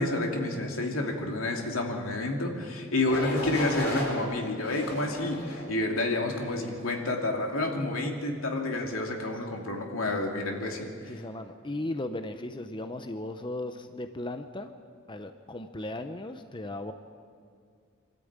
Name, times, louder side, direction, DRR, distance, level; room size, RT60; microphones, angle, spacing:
voice 1, 0.0-11.1, left 2 dB, 85° left, 2 dB, 2.7 m, -29 dB
sound 1, 3.1-4.1 4.7-5.7 6.3-6.7, left 1 dB, 50° left, 4.4 m, -34 dB
voice 2, 11.1-14.7 15.1-16.9, left 1 dB, 25° left, 8 dB, 0.7 m, -36 dB
25.5 x 13.5 x 8.9 m, 2.2 s
head